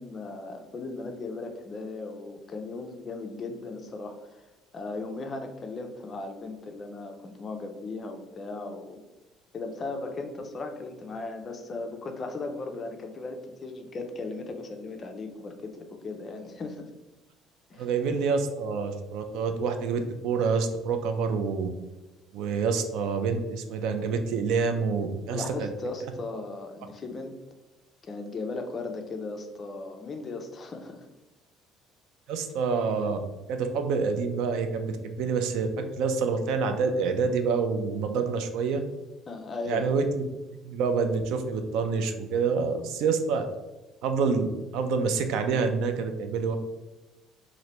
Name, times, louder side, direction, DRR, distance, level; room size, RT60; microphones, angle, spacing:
voice 1, 0.0-4.5 4.7-9.0 9.5-16.9 17.7-17.9 25.3-27.3 28.0-31.0 39.3-40.0, left 3 dB, 25° left, 5 dB, 0.3 m, -37 dB
voice 2, 17.8-21.7 22.3-25.7 32.3-33.2 33.5-38.8 39.7-40.2 40.6-43.4 44.0-46.6, right 5 dB, 70° right, 7 dB, 0.3 m, -27 dB
3.0 x 2.5 x 2.9 m, 1.1 s
cardioid pair, 160°, 0 cm